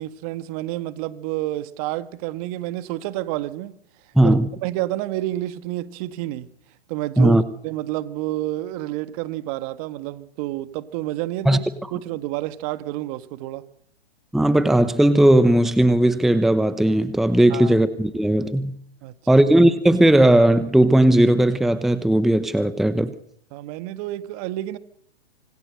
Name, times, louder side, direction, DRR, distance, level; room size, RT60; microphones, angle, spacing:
voice 1, 0.0-3.7 4.2-6.5 6.9-7.4 7.6-11.6 11.9-13.6 17.5-17.8 19.0-19.4 23.5-24.8, right 15 dB, 35° right, 1.7 m, -29 dB
voice 2, 4.2-4.5 7.2-7.4 11.5-11.6 14.3-18.8 19.3-23.1, right 1 dB, ahead, 0.9 m, -17 dB
26.0 x 23.5 x 6.6 m
hypercardioid pair, 125°, 31 cm